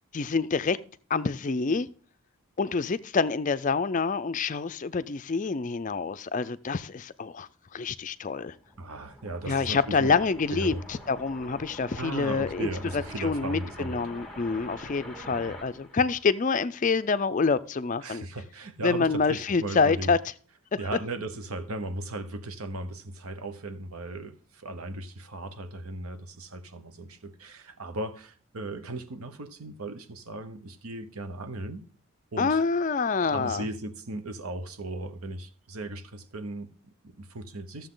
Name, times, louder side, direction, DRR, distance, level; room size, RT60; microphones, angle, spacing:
voice 1, 0.1-0.8 1.1-1.9 2.6-8.5 9.5-18.2 18.8-20.2 32.4-33.6, left 4 dB, 35° left, 0.4 m, -27 dB
sound 1, 8.5-16.8, equal, ahead, 1.8 m, -46 dB
voice 2, 8.8-10.2 10.5-10.8 11.9-14.1 15.3-15.6 18.0-20.1 20.8-31.9 32.3-32.6 33.3-37.9, right 2 dB, 85° right, 1.0 m, -37 dB
14.0 x 7.1 x 3.8 m
head